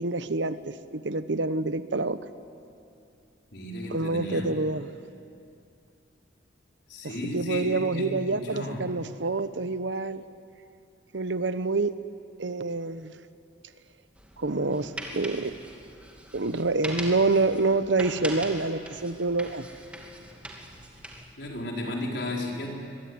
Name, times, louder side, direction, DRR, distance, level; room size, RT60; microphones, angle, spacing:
voice 1, 0.0-2.2 3.9-4.9 7.0-10.2 11.1-12.0 12.4-13.1 14.4-15.5 16.3-19.7, right 3 dB, 70° right, 13 dB, 1.0 m, -27 dB
voice 2, 3.5-4.5 6.9-8.9 21.3-22.7, left 1 dB, 65° left, -1 dB, 4.9 m, -34 dB
sound 1, 14.2-21.3, right 1 dB, 5° right, 2.6 m, -41 dB
25.0 x 22.0 x 9.7 m, 2.5 s
head